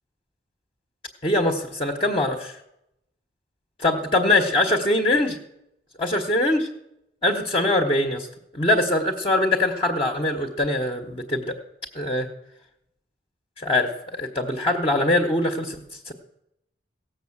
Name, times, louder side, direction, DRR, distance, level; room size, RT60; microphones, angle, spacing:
voice 1, 1.2-2.5 3.8-5.4 6.0-6.7 7.2-8.3 8.5-11.5 11.9-12.3 13.6-15.8 16.1-16.2, left 1 dB, 30° left, 2 dB, 1.1 m, -22 dB
16.5 x 7.2 x 7.3 m, 0.81 s
head